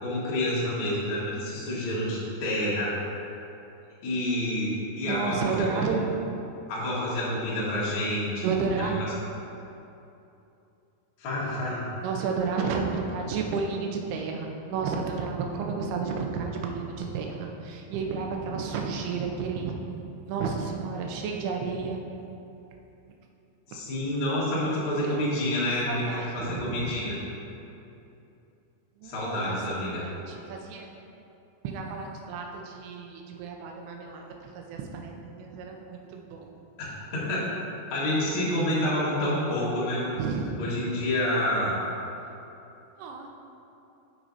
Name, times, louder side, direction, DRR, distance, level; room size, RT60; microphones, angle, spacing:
voice 1, 0.0-3.0 4.0-5.8 6.7-8.5 8.8-8.9 11.2-11.9 23.7-27.1 29.0-30.1 36.8-37.5 37.9-40.1 40.6-41.8, left 1 dB, 75° left, -8 dB, 1.2 m, -28 dB
voice 2, 5.1-6.0 6.2-6.3 8.4-9.0 12.0-19.7 20.3-22.0 23.7-23.8 24.7-25.2 25.6-27.0 29.0-30.9 31.6-36.5 40.2-40.6 42.8-43.3, right 5 dB, 80° right, 1 dB, 2.6 m, -32 dB
9.2 x 6.6 x 2.7 m, 2.8 s
omnidirectional pair, 5.0 m